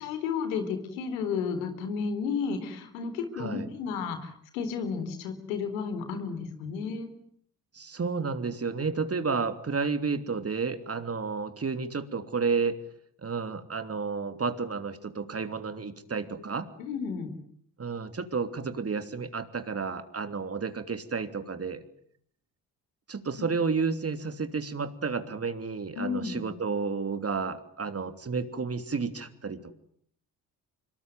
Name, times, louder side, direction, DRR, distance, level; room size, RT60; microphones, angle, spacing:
voice 1, 0.0-7.1 16.8-17.3 26.0-26.4, left 5 dB, 90° left, 9 dB, 3.8 m, -32 dB
voice 2, 3.3-3.7 7.7-12.8 13.2-16.7 17.8-21.8 23.1-29.7, right 5 dB, 35° right, 10 dB, 3.2 m, -31 dB
25.5 x 22.5 x 9.3 m, 0.64 s
hypercardioid pair, 55°, 40 cm